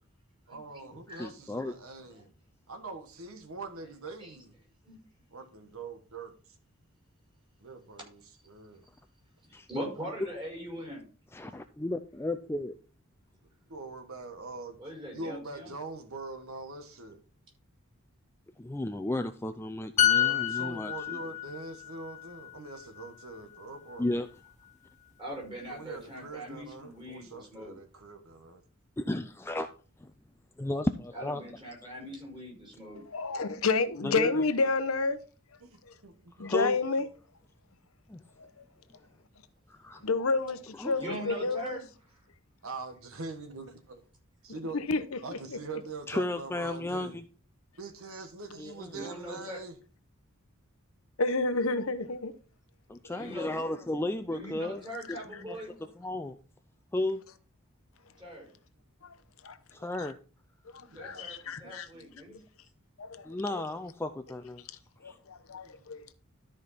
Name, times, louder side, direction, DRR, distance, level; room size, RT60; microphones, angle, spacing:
voice 1, 0.5-2.2 2.7-4.5 5.3-6.3 7.6-8.8 13.7-14.8 15.1-17.2 20.1-24.1 25.7-28.6 35.6-36.5 40.0-40.1 42.6-44.0 44.4-44.8 45.2-47.1 47.8-49.7 60.8-61.4 61.6-62.1 65.6-65.7 66.0-66.1, right 3 dB, 80° right, 1.4 m, -43 dB
voice 2, 1.2-1.7 9.5-9.7 11.3-12.7 18.6-21.2 24.0-24.3 29.0-29.7 30.0-30.1 30.6-31.4 31.8-31.9 34.0-34.3 36.4-36.8 38.1-38.2 39.7-40.0 40.7-41.0 46.1-47.2 48.6-49.0 52.9-54.8 55.5-56.4 56.9-57.2 59.7-60.2 63.2-64.7 65.0-65.1, left 1 dB, 10° left, 0.4 m, -34 dB
voice 3, 9.7-11.0 14.8-15.7 25.2-27.8 31.1-33.0 41.0-41.8 48.9-49.6 53.1-55.8 58.2-58.5 60.9-62.4, equal, 25° right, 5.2 m, -41 dB
sound 1, 20.0-23.6 23.9-24.1, left 11 dB, 35° left, 0.7 m, -29 dB
voice 4, 33.1-35.2 35.8-35.9 36.4-37.0 38.4-38.6 40.0-41.8 44.7-45.2 45.5-45.8 51.2-52.3 53.0-53.1 59.0-59.1 59.4-59.6 60.0-60.1 60.7-61.9 63.0-63.6 65.0-66.1, left 3 dB, 80° left, 0.9 m, -30 dB
13.0 x 5.1 x 4.1 m
head